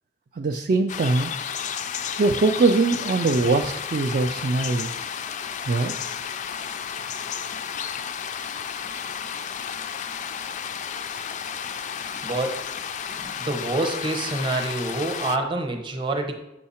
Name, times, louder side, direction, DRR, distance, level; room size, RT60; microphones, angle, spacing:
voice 1, 0.3-1.3 2.2-5.1 5.6-5.9, right 3 dB, 45° right, 3 dB, 0.3 m, -22 dB
sound 1, 0.9-15.4, left 7 dB, 40° left, 0.3 m, -32 dB
voice 2, 12.2-12.7 13.1-16.3, right 2 dB, 25° right, 4 dB, 0.8 m, -27 dB
6.4 x 4.7 x 4.3 m, 0.90 s
head